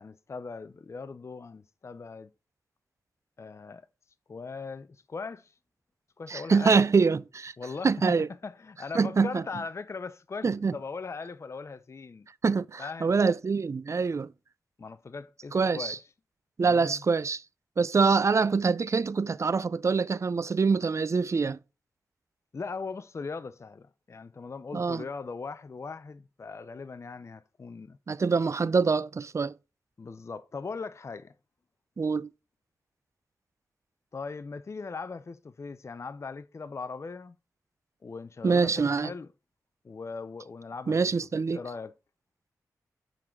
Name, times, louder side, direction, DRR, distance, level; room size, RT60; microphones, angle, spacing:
voice 1, 0.0-2.3 3.4-3.9 4.3-5.5 6.2-6.8 7.6-8.2 8.4-12.3 12.8-13.2 14.8-16.0 16.6-17.0 22.5-28.0 30.0-31.3 34.1-37.4 38.0-39.3 39.8-41.0 41.3-41.9, left 4 dB, 45° left, 0.5 m, -39 dB
voice 2, 6.3-7.5 7.8-8.3 8.9-9.4 10.4-10.7 12.4-14.3 15.5-16.0 16.6-17.4 17.8-21.6 24.7-25.0 28.1-29.5 32.0-32.3 38.4-39.1 40.9-41.6, right 4 dB, 45° right, 0.4 m, -25 dB
7.3 x 3.9 x 6.3 m
cardioid pair, 45°, 7 cm